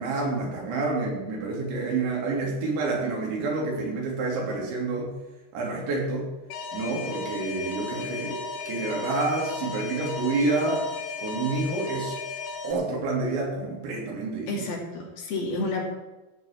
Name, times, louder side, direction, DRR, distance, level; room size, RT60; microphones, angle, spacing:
voice 1, 0.0-5.1 5.5-6.3 6.7-10.9 11.2-12.2 12.6-14.5, right 3 dB, 85° right, -2 dB, 5.5 m, -28 dB
Alarm, 6.5-12.7, left 4 dB, 85° left, 3.7 m, -35 dB
voice 2, 14.5-15.8, left 2 dB, 60° left, -1 dB, 4.3 m, -30 dB
15.0 x 5.6 x 8.9 m, 1.1 s
omnidirectional pair, 5.1 m